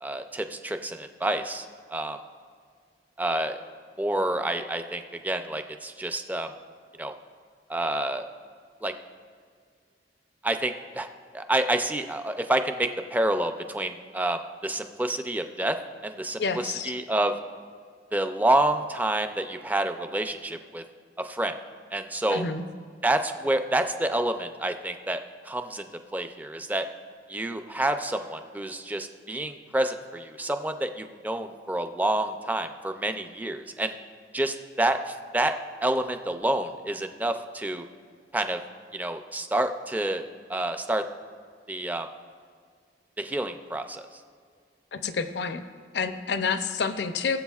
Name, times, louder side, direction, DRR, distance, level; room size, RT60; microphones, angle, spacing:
voice 1, 0.0-2.2 3.2-3.6 4.0-6.5 7.0-7.1 7.7-8.3 8.8-8.9 10.4-11.1 11.3-15.8 16.0-17.3 18.1-20.8 21.2-21.5 21.9-22.4 23.0-26.9 27.3-33.9 34.3-35.5 35.8-37.8 38.3-38.6 38.9-40.2 40.5-41.0 41.7-42.1 43.2-44.0, right 1 dB, 10° right, 7 dB, 0.4 m, -28 dB
voice 2, 16.4-16.9 22.3-22.6 44.9-45.6 45.9-47.4, left 5 dB, 70° left, 9 dB, 0.6 m, -28 dB
19.5 x 7.5 x 2.4 m, 2.1 s
head